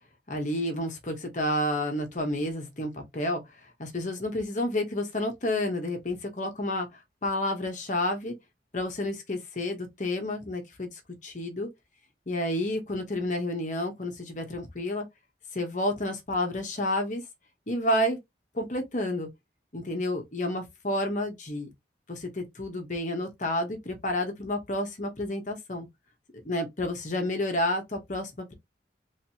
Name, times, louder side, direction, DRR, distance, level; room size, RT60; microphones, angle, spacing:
voice 1, 0.3-3.4 3.8-6.9 7.2-8.3 8.7-10.9 11.2-11.7 12.3-15.1 15.5-17.2 17.7-18.2 18.5-19.3 19.7-21.7 22.1-25.9 26.4-28.5, left 1 dB, 45° left, 1.0 m, -30 dB
3.2 x 3.0 x 2.8 m
head